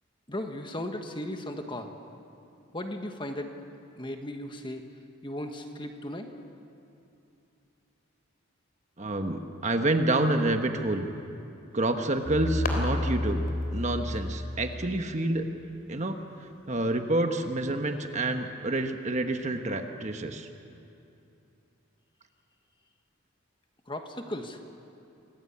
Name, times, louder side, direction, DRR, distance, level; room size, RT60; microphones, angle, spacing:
voice 1, 0.3-1.9 2.7-3.5 4.0-4.8 5.2-6.3 23.9-24.6, left 1 dB, 20° left, 5 dB, 1.4 m, -36 dB
voice 2, 9.0-11.1 11.7-15.4 15.9-16.2 16.7-20.5, right 2 dB, 35° right, 6 dB, 1.3 m, -28 dB
sound 1, 11.7-16.8, left 2 dB, 40° left, 3.3 m, -42 dB
sound 2, 12.2-15.4, left 1 dB, 50° right, 3.9 m, -31 dB
27.0 x 18.5 x 8.7 m, 2.7 s
head